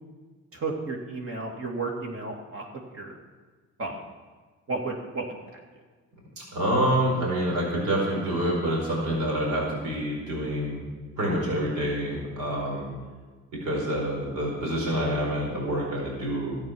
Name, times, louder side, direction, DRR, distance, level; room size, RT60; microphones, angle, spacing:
voice 1, 0.5-2.7 2.9-3.2 3.8-4.0 4.7-5.6, right 3 dB, 45° right, -1 dB, 2.2 m, -33 dB
voice 2, 6.4-10.8 11.2-12.9 13.6-16.5, right 1 dB, 80° right, -3 dB, 4.6 m, -27 dB
12.5 x 8.6 x 6.2 m, 1.4 s
cardioid pair, 90°, 30 cm